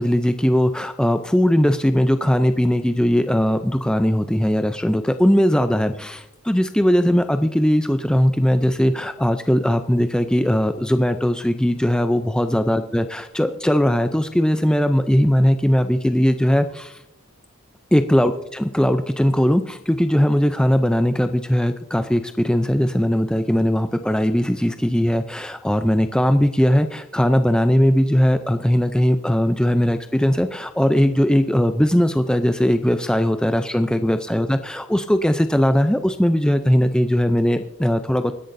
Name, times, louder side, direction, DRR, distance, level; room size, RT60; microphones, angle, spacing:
voice 1, 0.0-17.0 17.9-38.3, equal, 5° left, 8 dB, 0.4 m, -19 dB
24.5 x 10.5 x 2.6 m, 0.83 s
head